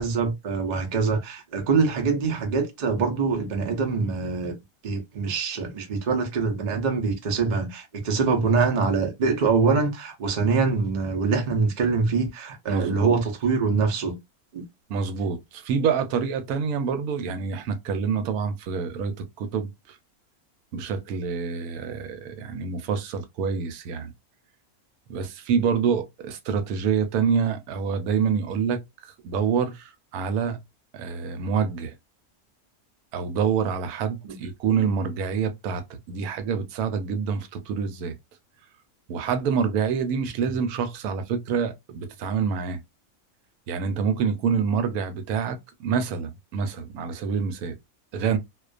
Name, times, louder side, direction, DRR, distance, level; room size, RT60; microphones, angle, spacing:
voice 1, 0.0-4.5 4.8-14.2 14.5-14.6 34.2-34.3, right 4 dB, 50° right, 0.5 m, -24 dB
voice 2, 12.7-13.2 14.9-19.7 20.7-24.1 25.1-30.6 30.9-31.9 33.1-38.2 39.1-42.8 43.7-47.8 48.1-48.4, right 6 dB, 90° right, 1.1 m, -27 dB
2.4 x 2.2 x 2.3 m
omnidirectional pair, 1.5 m